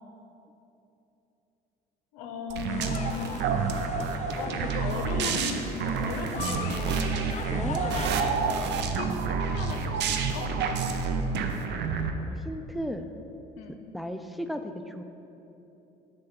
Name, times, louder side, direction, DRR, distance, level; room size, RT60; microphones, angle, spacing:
voice 1, 2.1-3.5 4.4-7.1 7.5-10.4 13.5-13.8, left 4 dB, 80° left, 4 dB, 0.7 m, -37 dB
sound 1, 2.5-12.1, right 5 dB, 55° right, 0.6 m, -29 dB
sound 2, 2.7-8.1, left 4 dB, 35° left, 0.7 m, -40 dB
voice 2, 7.5-7.8 9.0-9.3 12.3-13.1 13.9-15.0, equal, ahead, 7 dB, 0.4 m, -35 dB
7.6 x 3.3 x 5.8 m, 3.0 s
hypercardioid pair, 70°, 21 cm